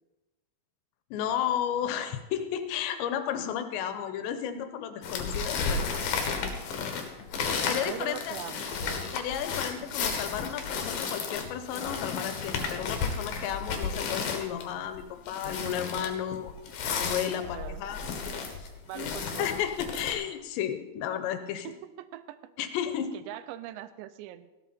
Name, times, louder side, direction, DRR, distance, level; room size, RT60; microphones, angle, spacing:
voice 1, 1.1-6.3 7.6-8.4 9.1-16.5 16.9-18.0 18.6-18.7 18.9-21.7 22.6-23.1, left 9 dB, 85° left, 9 dB, 3.2 m, -33 dB
sound 1, 5.0-20.1, left 5 dB, 65° left, 3.0 m, -33 dB
voice 2, 7.4-9.1 17.3-17.8 18.9-19.5 21.6-22.7 23.1-24.5, right 12 dB, 90° right, 13 dB, 2.9 m, -42 dB
15.0 x 12.5 x 4.3 m, 1.1 s
omnidirectional pair, 5.0 m